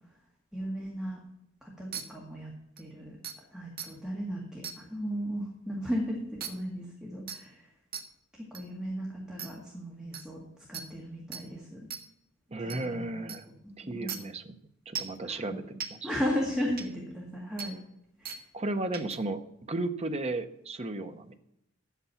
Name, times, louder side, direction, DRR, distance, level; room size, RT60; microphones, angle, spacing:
voice 1, 0.5-1.2 1.6-7.7 8.3-10.4 10.7-11.8 12.6-13.3 13.6-14.2 15.2-15.6 16.0-17.8 18.2-18.4, equal, 5° right, -3 dB, 1.9 m, -36 dB
sound 1, 1.9-2.0 2.8-2.9 3.2-3.4 3.8-3.9 4.6-4.8 6.4-6.5 7.3-7.4 7.9-8.0 8.5-8.6 9.4-9.5 10.1-10.2 10.7-10.9 11.3-11.4 11.9-12.0 12.7-12.8 13.3-13.4 14.1-14.2 15.0-15.2 15.8-15.9 16.8-16.9 17.6-17.7 18.3-18.4 18.9-19.2, right 7 dB, 45° right, 1.3 m, -37 dB
voice 2, 12.5-13.4 13.8-14.6 14.9-16.1 18.5-19.4 19.7-21.3, right 2 dB, 30° right, 7 dB, 0.8 m, -34 dB
10.5 x 8.2 x 5.8 m, 0.82 s
head